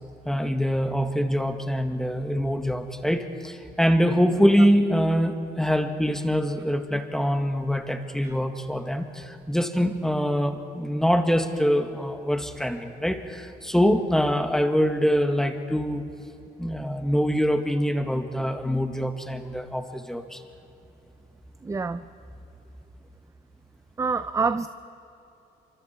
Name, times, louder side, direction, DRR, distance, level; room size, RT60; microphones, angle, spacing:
voice 1, 0.3-16.0 16.6-20.4, equal, 5° left, 6 dB, 1.8 m, -24 dB
voice 2, 21.6-22.0 24.0-24.7, right 4 dB, 15° right, 12 dB, 0.6 m, -26 dB
28.5 x 25.0 x 4.5 m, 2.9 s
cardioid pair, 100°, 18 cm